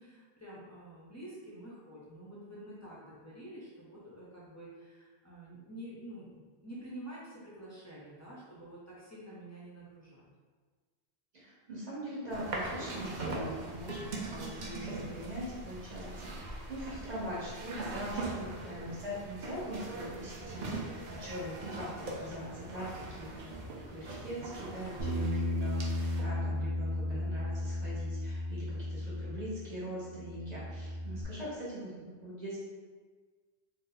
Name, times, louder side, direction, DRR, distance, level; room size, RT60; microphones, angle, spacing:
voice 1, 0.0-10.2 18.7-19.1, right 1 dB, 25° left, -8 dB, 0.3 m, -48 dB
voice 2, 11.3-23.5 23.9-32.6, equal, 40° right, -8 dB, 1.2 m, -42 dB
sound 1, 12.3-26.2, right 2 dB, 55° right, 0.6 m, -41 dB
Bass guitar, 25.0-29.8 30.1-31.2, left 1 dB, 90° right, 0.9 m, -34 dB
2.7 x 2.0 x 3.8 m, 1.5 s
omnidirectional pair, 1.1 m